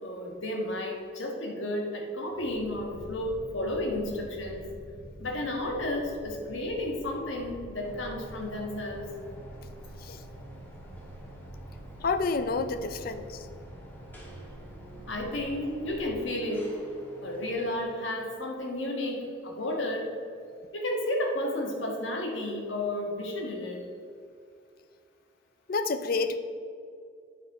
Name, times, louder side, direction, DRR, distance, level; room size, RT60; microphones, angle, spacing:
voice 1, 0.0-4.7 5.2-9.0 15.1-16.7 17.2-20.1 20.7-23.8, left 1 dB, 75° left, 1 dB, 1.4 m, -32 dB
sound 1, 2.3-16.2, equal, 30° right, 1.0 m, -47 dB
sound 2, 7.8-17.8, right 1 dB, 10° left, 1.4 m, -46 dB
voice 2, 12.0-13.5 25.7-26.4, left 4 dB, 50° left, 11 dB, 0.5 m, -29 dB
9.2 x 5.3 x 4.8 m, 2.4 s
head